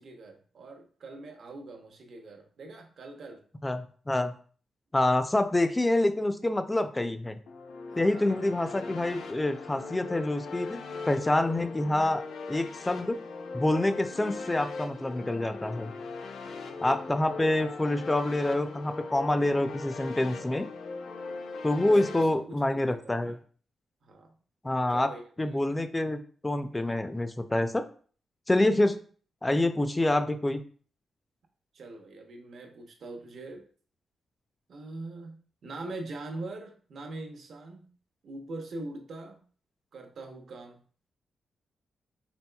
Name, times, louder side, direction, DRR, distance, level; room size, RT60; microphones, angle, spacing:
voice 1, 0.0-3.4 7.9-8.6 16.5-17.0 21.9-23.4 24.0-24.3 24.9-25.7 31.7-33.6 34.7-37.9 38.2-39.4 39.9-40.8, right 2 dB, 65° right, 3 dB, 0.8 m, -43 dB
voice 2, 3.6-4.3 4.9-7.4 8.0-13.2 13.5-15.9 16.8-20.7 21.6-23.3 24.6-25.1 25.4-27.8 28.5-29.0 29.4-30.6, left 1 dB, 15° left, 9 dB, 0.4 m, -27 dB
sound 1, 7.5-22.2, left 4 dB, 80° left, 0.5 m, -39 dB
4.3 x 3.8 x 2.3 m, 0.44 s
cardioid pair, 105°, 0 cm